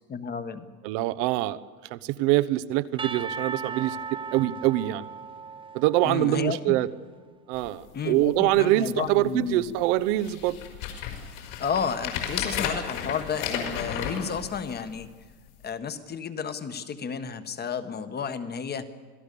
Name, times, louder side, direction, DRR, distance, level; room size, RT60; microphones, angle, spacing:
voice 1, 0.1-0.7 6.0-6.8 7.9-9.7 11.6-15.1 15.6-18.9, left 6 dB, 20° left, 10 dB, 1.5 m, -32 dB
voice 2, 0.8-1.6 1.9-5.1 5.7-6.9 7.5-10.6, right 15 dB, 55° right, 14 dB, 1.1 m, -24 dB
Percussion / Church bell, 3.0-6.9, right 5 dB, 10° right, 0.7 m, -37 dB
sound 1, 7.5-7.7 8.2-8.3 8.5-9.0 9.6-9.7 10.2-15.0 15.6-15.7, left 8 dB, 65° left, 5.5 m, -33 dB
26.5 x 17.0 x 7.0 m, 1.5 s
hypercardioid pair, 115°, 43 cm